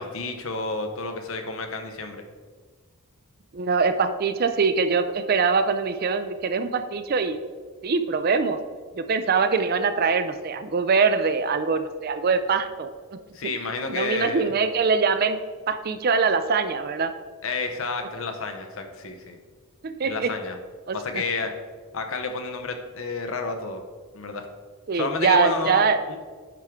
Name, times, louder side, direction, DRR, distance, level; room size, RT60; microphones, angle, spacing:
voice 1, 0.0-2.2 13.3-14.5 17.4-19.4 20.0-20.6 20.9-21.5 21.9-23.8 24.1-24.5 24.9-26.2, left 3 dB, 65° left, 6 dB, 0.8 m, -30 dB
voice 2, 3.5-7.4 7.8-8.6 8.9-13.2 13.9-15.4 15.7-17.1 19.8-20.3 20.9-21.2 24.9-26.0, right 5 dB, 45° right, 10 dB, 0.4 m, -23 dB
9.8 x 4.6 x 3.7 m, 1.5 s
head